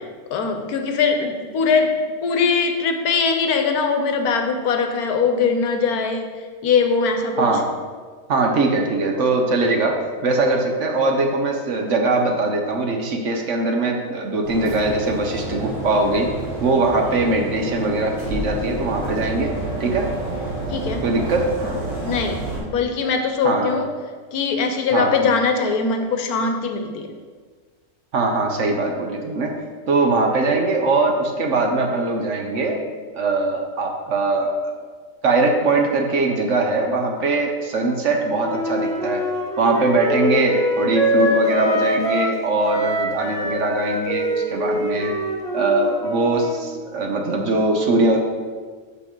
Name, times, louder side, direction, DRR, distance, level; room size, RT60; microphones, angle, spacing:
voice 1, 0.3-2.0 2.2-6.3 6.6-7.5 20.7-21.0 22.0-23.9 24.3-27.1, left 5 dB, 80° left, 5 dB, 1.2 m, -21 dB
voice 2, 8.3-10.0 10.2-16.3 16.6-19.5 19.8-20.1 21.0-21.5 23.4-23.8 24.9-25.1 28.1-29.5 29.9-32.8 33.1-34.5 35.2-39.2 39.6-45.1 45.5-48.2, right 3 dB, 60° right, 2 dB, 1.1 m, -21 dB
sound 1, 14.4-22.6, right 1 dB, 90° right, 2.2 m, -29 dB
Wind instrument woodwind instrument, 38.4-42.4 42.6-46.6, left 1 dB, 5° left, 0.7 m, -24 dB
7.2 x 6.0 x 3.8 m, 1.5 s
omnidirectional pair, 1.6 m